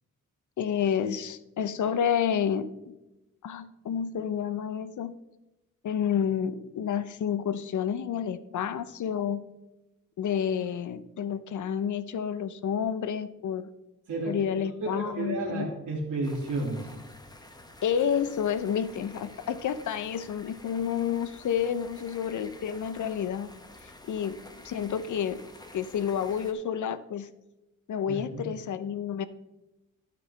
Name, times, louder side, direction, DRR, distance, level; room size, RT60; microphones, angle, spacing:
voice 1, 0.6-2.9 3.4-5.1 5.8-9.4 10.2-13.7 14.3-15.7 17.8-23.5 24.1-27.3 27.9-29.2, left 8 dB, 65° left, 14 dB, 0.7 m, -30 dB
voice 2, 14.8-16.9 28.1-28.5, right 2 dB, 70° right, -4 dB, 2.2 m, -32 dB
sound 1, 16.2-26.5, left 1 dB, 10° left, 1.1 m, -50 dB
12.0 x 9.2 x 3.3 m, 0.97 s
wide cardioid pair, 125°, 32 cm